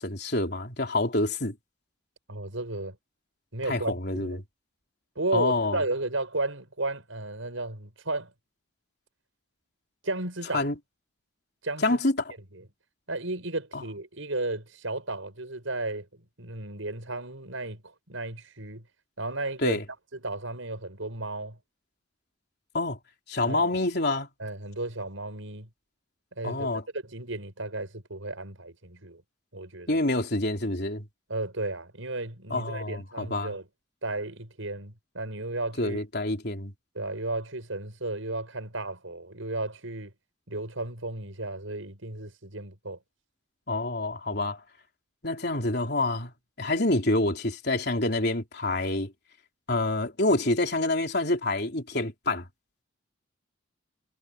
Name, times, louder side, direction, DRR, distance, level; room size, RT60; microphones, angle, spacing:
voice 1, 0.0-1.6 3.7-4.4 5.3-5.8 10.5-10.7 11.8-12.3 13.7-13.8 19.6-19.8 22.7-23.0 23.3-24.3 26.4-26.8 29.9-31.1 32.5-33.5 35.8-36.7 43.7-44.6 45.2-46.3 46.6-49.1 49.7-52.5, left 2 dB, 55° left, 3.8 m, -27 dB
voice 2, 2.3-3.0 3.5-4.4 5.2-8.3 10.0-10.7 11.6-12.0 12.5-12.7 13.1-18.8 19.2-19.8 20.1-21.6 23.5-23.7 24.4-25.7 26.4-26.7 26.9-29.2 29.5-30.0 31.3-33.7 34.0-36.0 36.9-40.1 40.5-43.0, right 2 dB, 80° right, 6.3 m, -34 dB
head